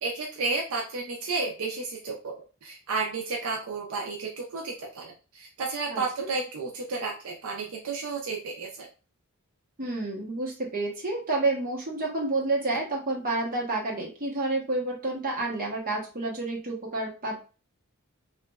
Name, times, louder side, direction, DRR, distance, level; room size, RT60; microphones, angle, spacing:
voice 1, 0.0-8.9, right 4 dB, 75° right, 0 dB, 0.5 m, -32 dB
voice 2, 9.8-17.5, right 2 dB, 40° right, -2 dB, 0.9 m, -29 dB
2.9 x 2.3 x 2.3 m, 0.34 s
head